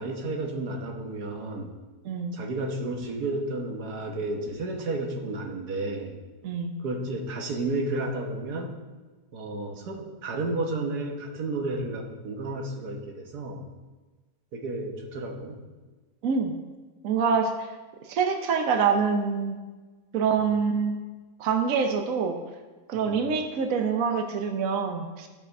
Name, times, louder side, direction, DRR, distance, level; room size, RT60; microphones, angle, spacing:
voice 1, 0.0-1.8 2.3-6.2 6.8-8.7 9.3-13.7 14.5-15.6 20.4-20.5 22.9-23.2, right 2 dB, 85° right, 1 dB, 1.7 m, -32 dB
voice 2, 2.0-2.4 6.4-6.7 16.2-16.5 17.0-17.7 18.0-19.6 20.1-21.0 21.4-22.4 22.9-25.3, right 5 dB, 65° right, 5 dB, 1.2 m, -25 dB
12.5 x 5.0 x 5.3 m, 1.3 s
omnidirectional pair, 1.6 m